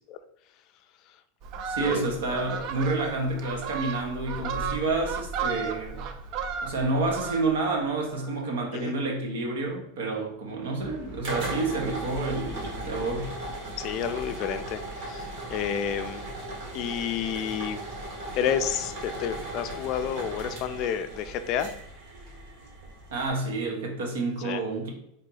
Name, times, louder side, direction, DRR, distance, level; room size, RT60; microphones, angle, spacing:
Fowl, 1.4-7.8 8.1-8.3, right 6 dB, 45° right, 0.5 m, -34 dB
voice 1, 1.7-6.1 6.6-13.3 23.1-24.9, right 3 dB, 85° right, 1.1 m, -29 dB
old drill press, 10.8-23.3, right 1 dB, 60° right, 1.4 m, -37 dB
voice 2, 13.8-16.3 16.7-17.8 18.3-21.7 24.4-24.6, left 8 dB, 45° left, 0.4 m, -30 dB
3.4 x 2.8 x 3.9 m
supercardioid pair, 135°, 0 cm